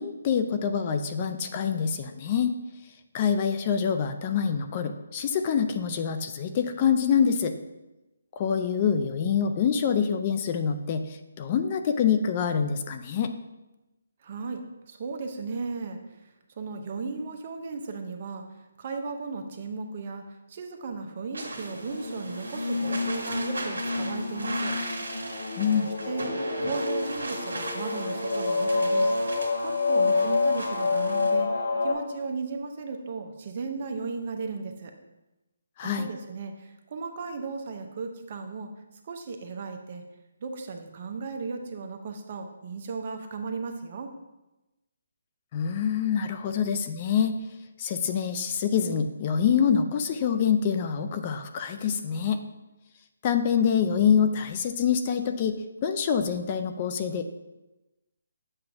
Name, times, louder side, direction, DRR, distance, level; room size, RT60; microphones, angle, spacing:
voice 1, 0.0-2.5 3.1-7.5 8.4-13.3 25.6-25.9 35.8-36.1 45.5-47.4 47.8-52.4 53.2-57.3, left 7 dB, 30° left, 7 dB, 0.4 m, -26 dB
voice 2, 14.2-18.4 18.8-20.2 20.5-24.8 26.1-29.1 29.6-31.5 31.8-34.9 35.8-38.7 39.0-40.0 40.4-44.1, right 4 dB, 40° right, 5 dB, 0.7 m, -35 dB
sound 1, 21.3-31.3, right 2 dB, 85° right, 1.6 m, -38 dB
sound 2, 21.6-31.9, left 3 dB, 65° left, 1.0 m, -28 dB
7.6 x 2.6 x 5.8 m, 1.0 s
hypercardioid pair, 160°, 0 cm